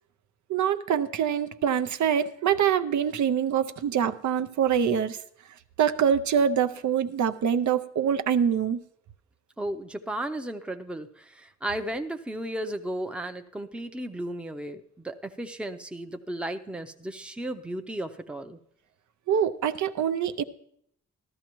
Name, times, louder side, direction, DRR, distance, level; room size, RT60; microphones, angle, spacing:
voice 1, 0.5-5.2 5.8-8.8 19.3-20.4, right 8 dB, 80° right, 10 dB, 0.6 m, -25 dB
voice 2, 9.6-18.6, right 1 dB, 5° right, 6 dB, 0.5 m, -34 dB
13.5 x 13.0 x 3.0 m, 0.70 s
wide cardioid pair, 105°, 29 cm